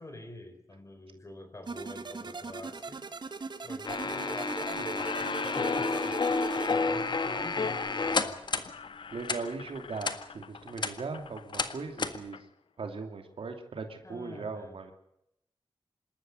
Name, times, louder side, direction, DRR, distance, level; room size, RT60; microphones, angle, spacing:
voice 1, 0.0-3.0 3.6-5.3 5.6-6.2 6.7-8.4 14.0-14.8, left 2 dB, 30° left, 8 dB, 4.3 m, -46 dB
sound 1, 1.7-6.7, right 4 dB, 50° right, 1.4 m, -40 dB
sound 2, 3.8-8.7 9.2-9.4 10.0-10.2 10.6-10.9 11.5-11.7 12.0-12.2, left 3 dB, 50° left, 1.7 m, -30 dB
Squeak, 4.0-4.6 4.8-12.4, left 5 dB, 65° left, 0.8 m, -43 dB
voice 2, 9.1-12.4 12.8-14.9, right 4 dB, 75° right, 5 dB, 2.7 m, -39 dB
27.0 x 13.0 x 7.9 m, 0.80 s
wide cardioid pair, 110°, 10 cm